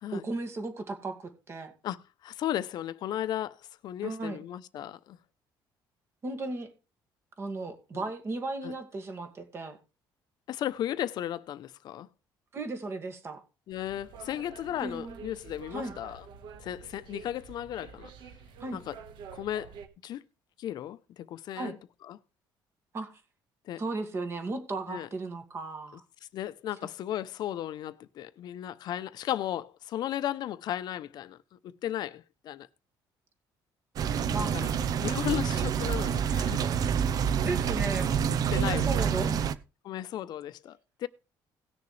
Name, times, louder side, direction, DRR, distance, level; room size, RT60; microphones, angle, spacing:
voice 1, 0.1-1.7 4.0-4.4 6.2-6.7 7.4-9.8 12.5-13.4 14.8-15.2 15.7-16.0 18.6-18.8 21.6-21.8 22.9-23.1 23.8-26.0 34.3-34.6 37.4-38.1 38.5-39.5, right 2 dB, 30° right, 2.2 m, -35 dB
voice 2, 1.8-3.6 3.8-5.2 7.9-8.0 8.6-8.7 10.5-12.1 13.7-16.2 16.6-18.1 18.7-19.0 19.3-19.7 20.0-20.2 20.6-21.8 22.1-22.2 23.7-23.8 24.9-25.1 26.3-32.7 34.5-34.7 35.0-36.6 38.5-39.1 39.8-41.1, left 12 dB, 55° left, 0.7 m, -35 dB
sound 1, 13.7-19.9, right 6 dB, 70° right, 1.4 m, -48 dB
sound 2, 34.0-39.5, right 8 dB, 50° right, 0.7 m, -27 dB
18.5 x 6.8 x 3.3 m
cardioid pair, 145°, 8 cm